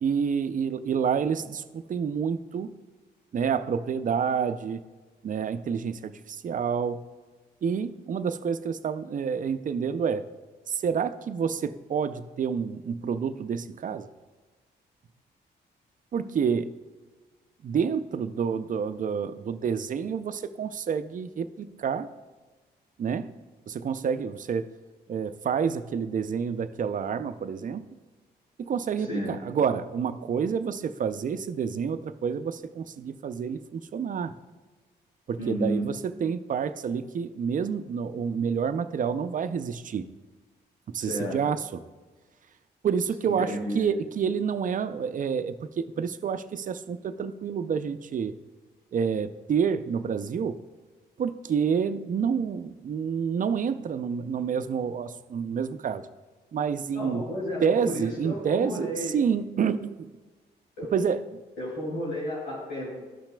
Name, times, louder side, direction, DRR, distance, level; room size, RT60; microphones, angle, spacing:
voice 1, 0.0-2.7 3.3-4.8 5.2-7.1 7.6-10.3 10.7-14.1 16.1-16.8 17.6-22.1 23.0-23.3 23.7-24.7 25.1-27.9 28.6-34.4 35.3-40.1 40.9-41.8 42.8-48.4 48.9-50.6 51.2-56.0 56.5-57.2 57.6-60.1 60.9-61.2, right 6 dB, 45° right, 13 dB, 0.5 m, -28 dB
voice 2, 29.0-29.3 35.4-35.8 41.0-41.4 43.2-43.9 56.9-59.1 60.8-60.9 61.6-62.9, equal, 75° left, -8 dB, 2.5 m, -32 dB
13.5 x 5.7 x 2.2 m, 1.3 s
cardioid pair, 65°, 18 cm